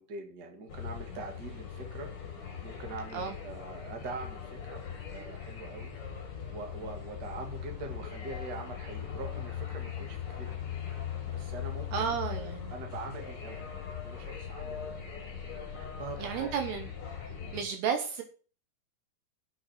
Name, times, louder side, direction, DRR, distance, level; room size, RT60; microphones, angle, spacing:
voice 1, 0.0-2.1 2.6-4.8 5.1-6.0 6.5-10.5 11.3-15.1 15.7-16.6 17.4-17.6, right 3 dB, 35° right, 3 dB, 2.0 m, -43 dB
sound 1, 0.7-17.6, left 8 dB, 35° left, 2.9 m, -40 dB
voice 2, 11.9-12.7 16.2-16.8 17.5-18.2, right 7 dB, 70° right, 5 dB, 2.9 m, -32 dB
8.2 x 6.3 x 7.6 m, 0.39 s
omnidirectional pair, 5.2 m